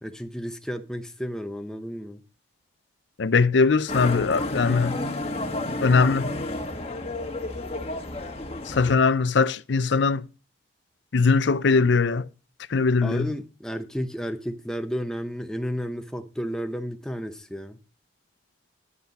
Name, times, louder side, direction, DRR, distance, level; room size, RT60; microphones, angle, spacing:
voice 1, 0.0-2.2 13.0-17.8, equal, 5° left, 0.8 m, -32 dB
voice 2, 3.2-4.9 5.8-6.3 8.7-10.2 11.1-12.2 12.7-13.3, left 4 dB, 65° left, 0.5 m, -21 dB
Motorcycle, 3.9-9.0, left 2 dB, 30° left, 1.4 m, -31 dB
11.0 x 8.0 x 4.1 m
head